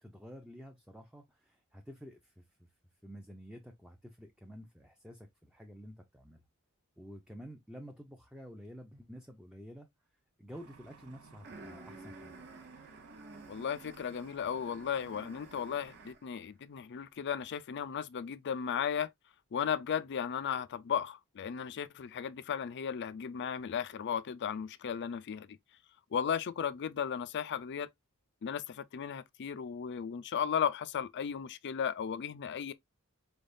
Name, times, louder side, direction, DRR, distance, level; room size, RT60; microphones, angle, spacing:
voice 1, 0.0-2.5 3.0-6.4 7.0-9.9 10.4-12.4, equal, 5° right, 0.5 m, -50 dB
sound 1, 10.5-16.1, right 5 dB, 85° right, 0.8 m, -58 dB
sound 2, 11.4-16.3, right 3 dB, 50° right, 1.1 m, -52 dB
voice 2, 13.5-19.1 19.5-25.6 26.1-27.9 28.4-32.7, left 7 dB, 55° left, 0.4 m, -35 dB
4.5 x 3.4 x 2.5 m
head